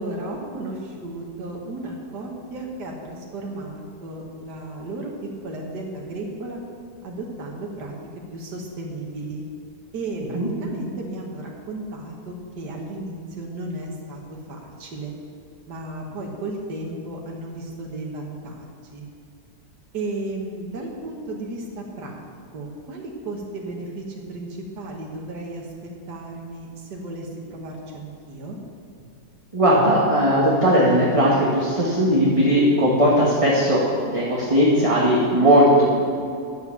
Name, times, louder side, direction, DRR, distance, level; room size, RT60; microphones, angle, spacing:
voice 1, 0.0-5.1 5.4-6.6 7.0-7.9 8.3-9.4 9.9-15.1 15.7-19.1 19.9-22.2 22.5-28.6, right 2 dB, 80° right, -1 dB, 2.0 m, -34 dB
voice 2, 29.5-33.8 34.1-35.9, equal, 20° right, -5 dB, 1.6 m, -18 dB
11.0 x 8.0 x 7.2 m, 2.5 s
omnidirectional pair, 1.8 m